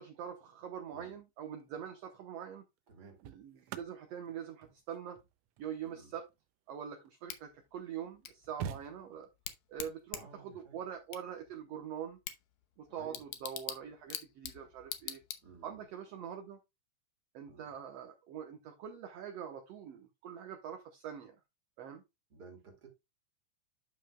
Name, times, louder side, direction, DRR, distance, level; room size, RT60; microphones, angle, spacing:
voice 1, 0.0-2.6 3.2-5.2 5.6-6.2 6.7-9.3 9.7-12.2 12.8-15.2 15.6-16.6 17.3-21.4 21.8-22.0, right 8 dB, 65° right, 1.7 m, -44 dB
sound 1, 1.6-1.9 2.8-7.4 8.0-8.1 8.2-9.5 11.2-11.4, right 8 dB, 90° right, 1.4 m, -47 dB
voice 2, 2.9-3.2 5.8-6.2 10.1-10.8 12.9-13.2 15.4-15.8 17.5-17.7 22.3-22.9, right 4 dB, 35° right, 2.4 m, -55 dB
Bicycle / Tick, 7.3-15.9, left 11 dB, 70° left, 2.1 m, -46 dB
11.5 x 5.7 x 2.2 m
omnidirectional pair, 3.7 m